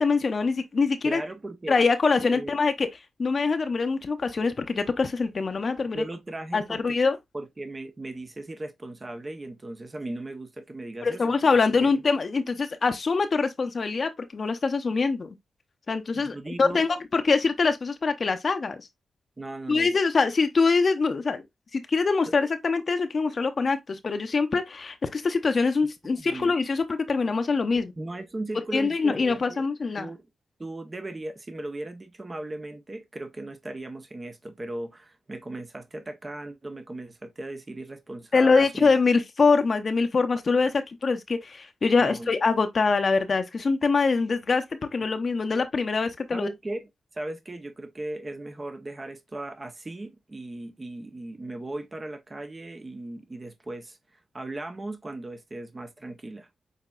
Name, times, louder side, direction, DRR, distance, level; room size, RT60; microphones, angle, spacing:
voice 1, 0.0-1.2 1.7-2.9 3.2-6.0 6.5-7.2 11.0-15.3 15.9-18.9 19.7-21.4 21.7-27.9 28.7-30.1 38.3-44.6 44.9-46.5, left 4 dB, 55° left, 0.6 m, -24 dB
voice 2, 1.0-1.8 2.2-2.5 5.9-6.9 7.3-11.4 11.8-11.9 16.1-16.9 19.4-19.9 26.2-26.5 27.8-29.7 30.0-30.2 30.6-38.9 42.0-42.3 46.3-56.5, right 2 dB, 35° right, 0.8 m, -37 dB
6.6 x 2.9 x 2.4 m
supercardioid pair, 40°, 0 cm